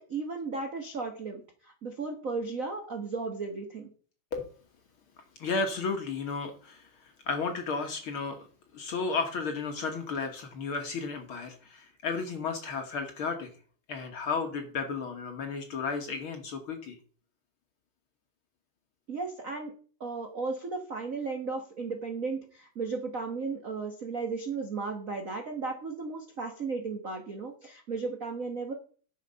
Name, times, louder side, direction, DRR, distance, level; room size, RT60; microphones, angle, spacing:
voice 1, 0.0-3.9 19.1-19.7 20.0-28.7, right 4 dB, 60° right, 3 dB, 0.8 m, -35 dB
voice 2, 5.4-6.9 7.3-8.4 8.7-13.5 13.9-16.9, left 4 dB, 55° left, 5 dB, 1.6 m, -33 dB
10.0 x 6.6 x 5.4 m, 0.42 s
omnidirectional pair, 3.5 m